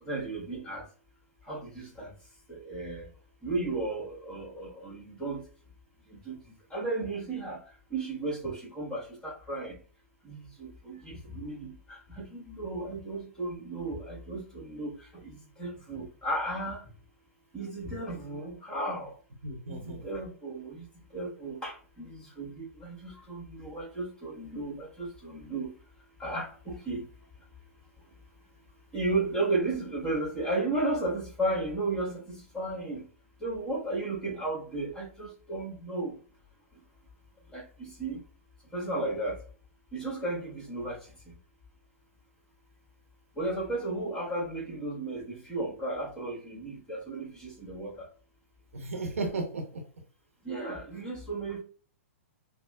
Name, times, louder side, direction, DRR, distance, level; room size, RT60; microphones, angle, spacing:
voice 1, 0.0-0.9 1.4-2.1 2.5-3.1 3.4-5.4 6.1-9.8 10.2-16.9 17.5-19.1 19.7-20.9 21.1-25.8 26.2-27.1 28.9-33.1 33.4-36.2 37.5-38.2 38.7-39.4 39.9-41.1 43.4-48.1 50.4-51.6, right 2 dB, 10° left, 1.4 m, -34 dB
voice 2, 19.4-20.0 48.7-49.8, right 2 dB, 70° right, 0.9 m, -34 dB
5.7 x 2.0 x 2.3 m
figure-of-eight pair, 110°, 8 cm